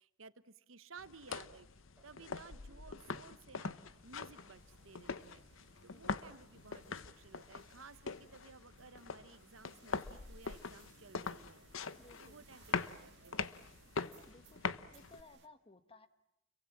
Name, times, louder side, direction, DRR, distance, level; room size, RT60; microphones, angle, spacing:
voice 1, 0.0-3.7 4.0-11.7 12.2-13.6, right 4 dB, 75° right, 14 dB, 1.1 m, -57 dB
sound 1, 1.0-15.2, left 5 dB, 75° left, 0.9 m, -43 dB
Boat Water vehicle, 1.9-7.7, right 1 dB, 5° right, 5.8 m, -71 dB
sound 2, 3.0-15.5, right 6 dB, 55° right, 2.0 m, -66 dB
voice 2, 5.9-6.2 12.0-12.4 14.2-16.1, left 2 dB, 30° left, 10 dB, 1.5 m, -60 dB
30.0 x 23.0 x 7.3 m, 0.87 s
head